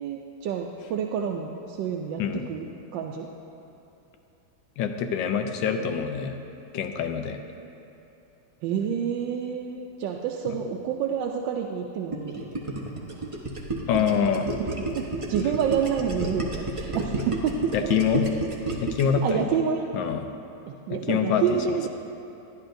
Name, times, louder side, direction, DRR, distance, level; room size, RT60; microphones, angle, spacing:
voice 1, 0.0-3.3 8.6-12.4 14.2-14.3 15.0-17.9 19.1-20.0 20.6-21.9, right 8 dB, 80° right, 0 dB, 1.3 m, -28 dB
voice 2, 4.8-6.4 6.7-7.4 10.5-10.6 13.9-14.4 17.7-18.2 18.8-19.6 19.9-20.3 21.1-21.9, left 7 dB, 80° left, 6 dB, 1.4 m, -25 dB
Gurgling, 12.1-19.2, right 2 dB, 40° right, 0.4 m, -31 dB
13.0 x 10.5 x 2.6 m, 2.9 s
omnidirectional pair, 2.0 m